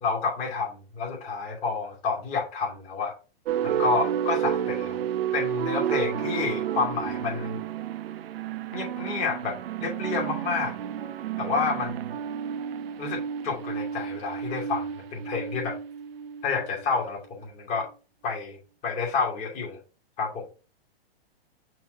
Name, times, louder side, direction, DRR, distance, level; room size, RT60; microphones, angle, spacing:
voice 1, 0.0-3.1 3.6-5.0 5.3-7.6 8.7-10.7 11.4-12.2 13.0-15.7 16.4-17.9 18.2-18.6 18.8-19.8 20.2-20.5, left 4 dB, 25° left, -2 dB, 2.7 m, -29 dB
sound 1, 3.5-16.8, right 9 dB, 70° right, 0.7 m, -31 dB
5.9 x 3.2 x 5.1 m, 0.34 s
hypercardioid pair, 150°, 31 cm